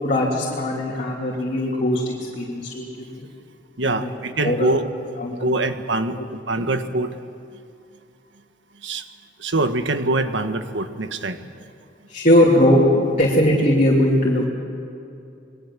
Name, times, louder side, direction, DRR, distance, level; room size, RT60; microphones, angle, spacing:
voice 1, 0.0-3.3 3.8-4.1 4.4-4.7 5.2-5.7 6.2-6.3 6.5-6.6 12.1-14.5, left 1 dB, 40° left, -4 dB, 3.2 m, -20 dB
voice 2, 3.8-4.8 5.4-7.1 8.8-9.0 9.4-11.4, right 2 dB, 70° right, 8 dB, 1.6 m, -24 dB
28.5 x 21.5 x 7.5 m, 2.6 s
head